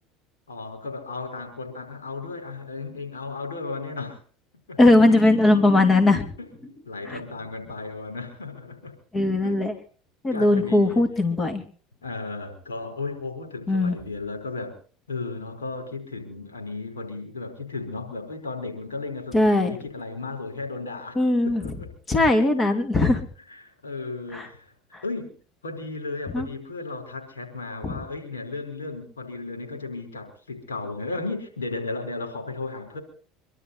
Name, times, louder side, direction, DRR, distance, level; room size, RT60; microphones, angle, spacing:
voice 1, 0.5-4.2 4.7-4.8 6.4-9.0 9.4-9.6 10.3-11.0 12.0-14.7 15.1-21.2 21.4-21.9 23.5-24.7 25.0-25.3 25.6-33.0, left 3 dB, 90° left, 4 dB, 4.8 m, -34 dB
voice 2, 4.8-6.3 7.1-7.2 9.1-9.7 10.2-11.6 13.7-14.0 19.3-19.8 21.2-21.6 22.1-23.2 24.3-24.5 24.9-25.0 26.3-26.5 27.8-28.0, left 2 dB, 25° left, 7 dB, 2.8 m, -19 dB
25.0 x 12.5 x 4.2 m, 0.41 s
hypercardioid pair, 80°, 0 cm